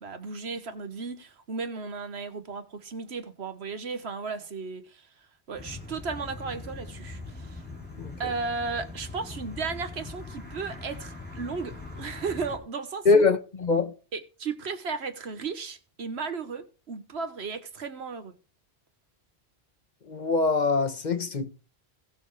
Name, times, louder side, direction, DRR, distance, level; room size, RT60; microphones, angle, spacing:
voice 1, 0.0-5.1 5.5-7.6 8.2-13.2 14.1-18.3, right 4 dB, 80° right, 1.5 m, -35 dB
sound 1, 5.5-12.6, left 3 dB, 10° left, 2.9 m, -41 dB
voice 2, 13.0-13.9 20.1-21.5, left 4 dB, 45° left, 1.1 m, -23 dB
17.5 x 6.8 x 3.2 m
omnidirectional pair, 1.1 m